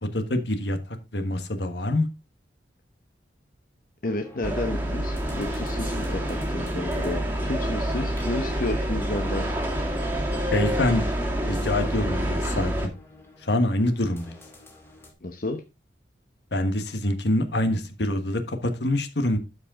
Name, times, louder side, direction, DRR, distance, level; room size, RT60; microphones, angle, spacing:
voice 1, 0.0-0.8 1.1-2.1 10.5-11.1 11.5-12.7 13.4-14.3 16.5-19.4, left 1 dB, 70° left, 1.4 m, -25 dB
voice 2, 4.0-9.5 15.2-15.6, left 2 dB, 50° left, 0.9 m, -31 dB
sound 1, 4.0-15.1, left 1 dB, 15° left, 2.2 m, -50 dB
sound 2, 4.4-12.9, right 1 dB, 10° right, 1.9 m, -27 dB
12.5 x 5.1 x 3.7 m
head